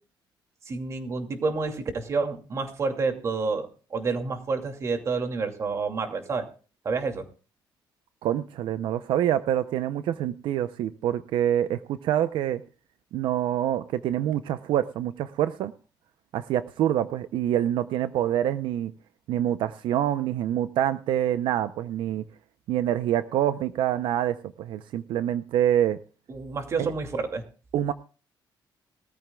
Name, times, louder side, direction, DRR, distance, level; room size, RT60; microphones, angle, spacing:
voice 1, 0.7-6.4 6.8-7.2 26.3-27.4, right 4 dB, 35° right, 5 dB, 2.5 m, -29 dB
voice 2, 8.2-12.6 13.1-15.7 16.3-18.9 19.3-22.2 22.7-26.0 26.8-26.9 27.7-27.9, right 11 dB, 80° right, 12 dB, 0.6 m, -26 dB
21.0 x 14.0 x 2.3 m, 0.37 s
cardioid pair, 155°, 8 cm